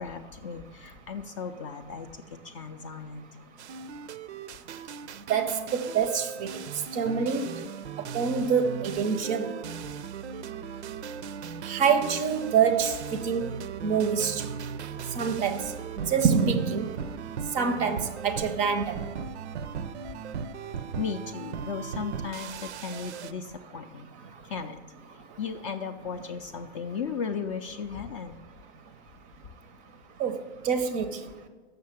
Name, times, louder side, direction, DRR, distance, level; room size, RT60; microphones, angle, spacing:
voice 1, 0.0-3.2 21.0-24.1 24.4-24.8 25.4-28.4, left 6 dB, 30° left, 7 dB, 0.4 m, -36 dB
sound 1, 3.6-23.3, right 7 dB, 75° right, 0.5 m, -38 dB
voice 2, 5.3-6.5 6.9-7.4 8.1-9.5 11.7-12.9 13.2-13.5 13.8-14.5 15.2-15.6 16.0-16.8 17.5-19.0 30.2-30.4 30.6-31.1, right 6 dB, 25° right, 10 dB, 0.5 m, -25 dB
6.6 x 6.5 x 5.7 m, 1.4 s
hypercardioid pair, 115°, 34 cm